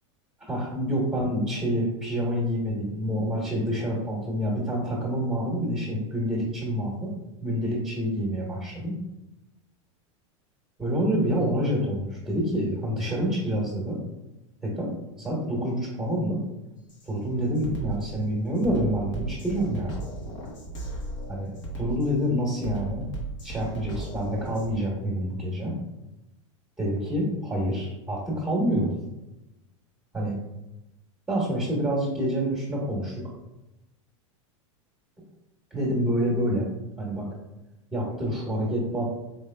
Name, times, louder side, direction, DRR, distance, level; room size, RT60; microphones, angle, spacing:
voice 1, 0.5-7.1 7.4-8.9 10.8-14.0 14.6-14.9 15.2-16.4 17.1-20.0 21.3-23.1 23.4-25.7 26.8-28.9 30.1-30.4 31.3-33.2 35.7-36.7 37.0-37.3 37.9-39.1, equal, 5° right, -5 dB, 1.0 m, -27 dB
Drum kit, 16.9-17.1 17.6-24.7, right 3 dB, 70° left, 1.0 m, -36 dB
4.5 x 3.2 x 2.2 m, 0.95 s
supercardioid pair, 120°, 16 cm